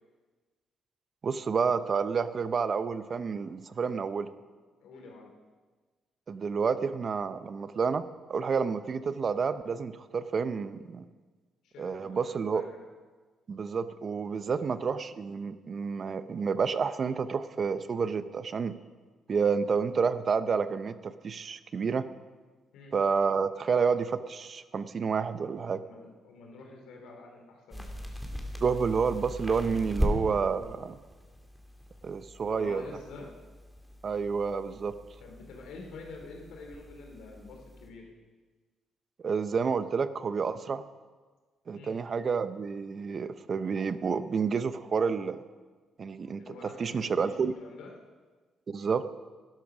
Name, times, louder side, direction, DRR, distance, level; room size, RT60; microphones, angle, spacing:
voice 1, 1.2-4.3 6.3-8.0 8.3-11.0 11.8-12.6 13.5-18.7 19.3-22.1 22.9-25.8 28.6-31.0 32.0-32.8 34.0-35.0 39.2-40.8 41.7-45.4 46.0-47.5 48.7-49.0, right 5 dB, 45° right, 13 dB, 0.7 m, -29 dB
voice 2, 4.8-5.3 11.6-12.8 14.6-14.7 22.7-22.9 25.8-27.9 32.4-33.3 35.2-38.1 41.7-41.9 46.4-47.9, left 3 dB, 85° left, 1 dB, 3.1 m, -47 dB
sound 1, 27.7-37.9, equal, ahead, 2.3 m, -38 dB
12.0 x 12.0 x 6.1 m, 1.4 s
cardioid pair, 90°, 0 cm